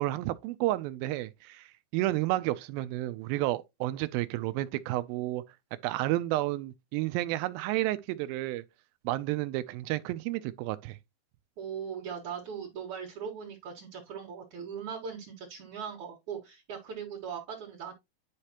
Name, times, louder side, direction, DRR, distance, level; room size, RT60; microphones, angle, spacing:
voice 1, 0.0-1.7 1.9-5.4 5.8-8.6 9.0-11.0, right 16 dB, 80° right, 2.2 m, -31 dB
voice 2, 11.6-17.9, right 7 dB, 60° right, 2.4 m, -39 dB
10.5 x 4.9 x 2.9 m
omnidirectional pair, 4.5 m